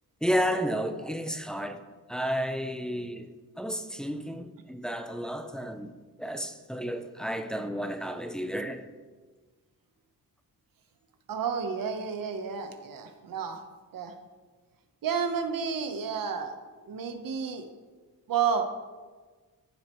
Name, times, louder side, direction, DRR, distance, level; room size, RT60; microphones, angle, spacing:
voice 1, 0.2-1.8 2.1-5.9 6.2-8.9, equal, ahead, 0.5 m, -32 dB
voice 2, 11.3-13.6 13.9-14.1 15.0-16.5 16.9-17.7 18.3-18.7, right 6 dB, 70° right, 1.1 m, -31 dB
14.5 x 7.7 x 3.1 m
wide cardioid pair, 150°, 35 cm